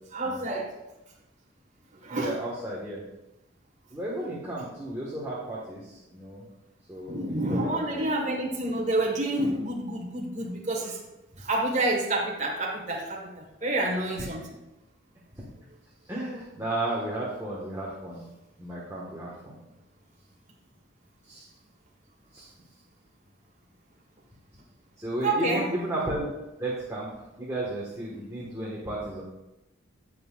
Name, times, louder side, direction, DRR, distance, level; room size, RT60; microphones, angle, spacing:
voice 1, 0.1-0.7 2.0-2.3 7.1-11.0 11.4-14.5 25.2-25.7, right 2 dB, 35° right, -2 dB, 1.6 m, -28 dB
voice 2, 2.1-3.0 3.9-6.4 6.9-8.0 14.2-14.3 15.4-15.5 16.0-18.2 18.6-19.6 21.2-21.4 22.3-22.5 25.0-26.3 26.6-29.2, right 1 dB, 15° right, -6 dB, 1.6 m, -34 dB
17.0 x 5.7 x 2.5 m, 0.96 s
head